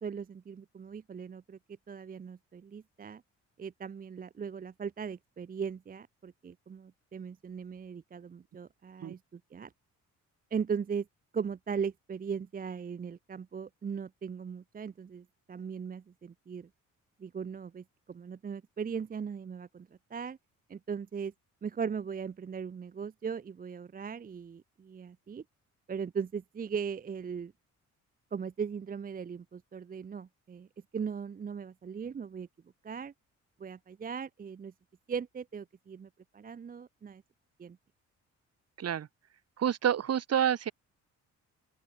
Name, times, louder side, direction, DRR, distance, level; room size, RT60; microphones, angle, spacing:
voice 1, 0.0-1.6 1.9-3.2 3.6-9.7 10.5-11.1 11.3-16.7 17.2-20.4 20.7-21.3 21.6-25.4 25.9-27.5 28.3-30.7 30.9-32.5 32.8-33.1 33.6-34.7 35.1-37.2 37.6-37.8, right 6 dB, 30° right, 0.7 m, -38 dB
voice 2, 39.6-40.7, right 9 dB, 55° right, 2.1 m, -28 dB
open air
cardioid pair, 90°, 30 cm